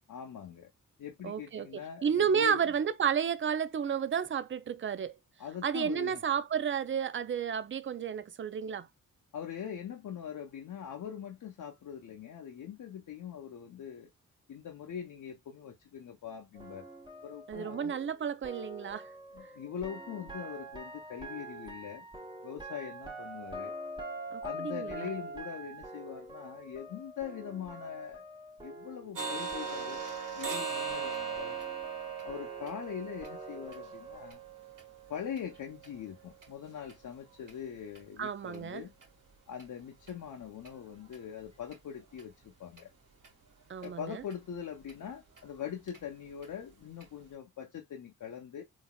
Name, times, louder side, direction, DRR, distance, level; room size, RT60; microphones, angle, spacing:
voice 1, 0.1-0.7 1.0-2.7 5.4-6.2 9.3-14.1 14.5-16.9 17.2-17.9 19.3-22.1 22.4-23.7 24.4-28.2 28.6-30.0 30.3-31.6 32.2-34.4 35.1-38.9 39.5-42.9 43.8-48.6, left 8 dB, 60° left, 0.7 m, -42 dB
voice 2, 1.2-1.7 2.0-5.1 5.6-8.9 17.5-19.1 24.3-25.1 38.2-38.8 43.7-44.2, right 7 dB, 35° right, 0.5 m, -31 dB
sound 1, 16.5-29.2 29.5-34.3, right 1 dB, 15° right, 1.4 m, -45 dB
sound 2, 29.2-37.0 37.4-37.5 38.0-38.1 38.5-38.6 39.0-39.1 39.6-39.7 40.1-40.2 40.6-40.7 41.1-41.2 41.7-41.8 42.2-42.3 42.8-42.9 43.2-43.3 43.8-43.9 44.3-44.4 44.9-45.0 45.4-45.5 45.9-46.0 46.4-46.5 47.0-47.1, right 6 dB, 65° right, 1.6 m, -39 dB
3.9 x 2.7 x 2.2 m
cardioid pair, 65°, 35 cm